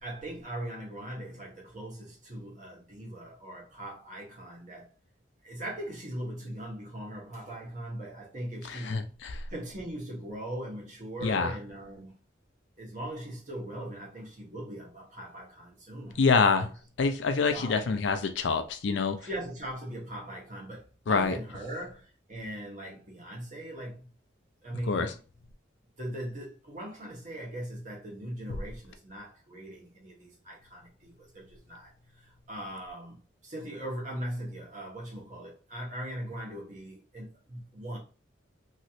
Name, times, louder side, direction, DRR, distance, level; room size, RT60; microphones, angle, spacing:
voice 1, 0.0-4.9 5.4-9.0 9.5-12.2 12.8-16.7 17.5-17.9 19.2-24.1 24.6-25.2 26.0-33.2 33.4-38.0, right 1 dB, 40° right, 1.2 m, -40 dB
voice 2, 8.7-9.4 11.2-11.5 16.2-16.7 17.0-19.2 21.1-21.3 24.9-25.1, left 4 dB, 70° left, 0.4 m, -26 dB
3.1 x 2.8 x 2.4 m
head